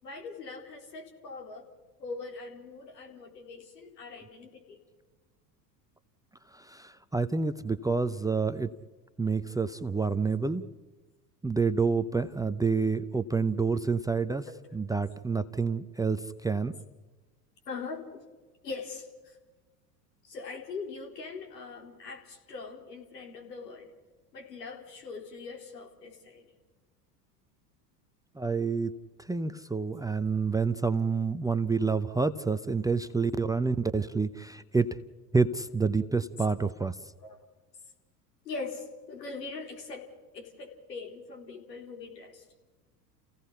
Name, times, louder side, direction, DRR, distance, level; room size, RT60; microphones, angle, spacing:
voice 1, 0.0-1.6 2.0-4.8 14.5-14.6 17.7-18.2 18.6-19.4 20.2-23.9 24.3-26.5 37.2-37.4 38.4-42.4, left 4 dB, 80° left, 2 dB, 4.2 m, -42 dB
voice 2, 6.6-8.7 9.2-10.6 11.4-14.4 14.7-16.7 28.4-28.9 29.3-34.9 35.3-36.9, right 4 dB, 5° right, 10 dB, 0.7 m, -28 dB
30.0 x 17.0 x 5.7 m, 1.2 s
hypercardioid pair, 80°, 48 cm